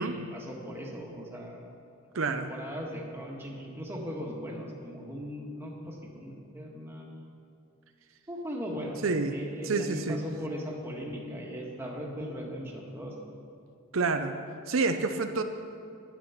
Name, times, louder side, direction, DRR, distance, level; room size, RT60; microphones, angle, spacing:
voice 1, 0.0-1.7 2.3-7.3 8.3-9.0 9.3-13.1, equal, 10° right, -2 dB, 1.6 m, -38 dB
voice 2, 2.1-2.5 9.0-9.3 9.6-10.2 13.9-14.3 14.7-15.4, right 4 dB, 90° right, 7 dB, 0.7 m, -28 dB
11.5 x 9.6 x 5.8 m, 2.4 s
head